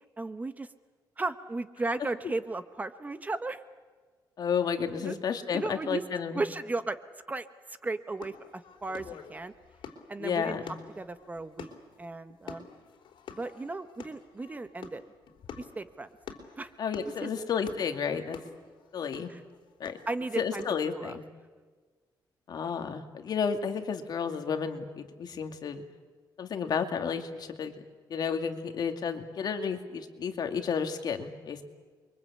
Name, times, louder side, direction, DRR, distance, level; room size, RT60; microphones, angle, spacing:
voice 1, 0.2-0.7 1.2-3.6 5.0-5.1 5.5-6.0 6.3-7.0 7.3-9.5 10.1-10.6 11.0-11.7 12.0-12.7 13.3-15.0 15.6-16.1 16.6-16.7 17.0-17.3 19.3-19.4 20.1-20.6 20.9-21.1, right 3 dB, 20° right, 11 dB, 1.0 m, -35 dB
voice 2, 4.4-6.4 10.2-10.7 16.8-18.4 18.9-19.3 19.8-20.0 20.4-21.2 22.5-25.8 26.4-27.7 28.1-31.6, left 6 dB, 55° left, 6 dB, 2.3 m, -32 dB
sound 1, 8.2-20.9, left 7 dB, 70° left, 3.6 m, -48 dB
29.0 x 23.5 x 8.5 m, 1.4 s
cardioid pair, 135°, 8 cm